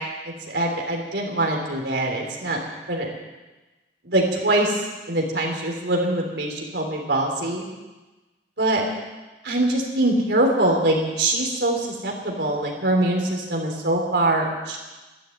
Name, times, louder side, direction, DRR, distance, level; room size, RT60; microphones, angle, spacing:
voice 1, 0.5-2.6 2.9-3.1 4.0-7.7 8.6-8.8 9.4-14.8, right 1 dB, 75° right, 0 dB, 3.6 m, -23 dB
12.0 x 11.5 x 9.4 m, 1.2 s
head